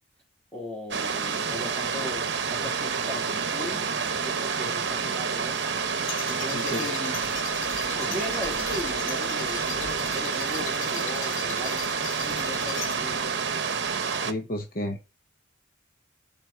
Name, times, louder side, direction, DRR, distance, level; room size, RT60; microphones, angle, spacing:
voice 1, 0.5-5.6 6.3-7.5 8.0-13.2, left 1 dB, 5° left, 1.9 m, -38 dB
sound 1, 0.9-14.3, right 5 dB, 60° right, 0.8 m, -29 dB
sound 2, 5.5-13.3, left 7 dB, 85° left, 0.9 m, -39 dB
voice 2, 6.5-6.9 14.2-15.0, left 1 dB, 45° left, 0.9 m, -31 dB
7.9 x 4.2 x 6.1 m
head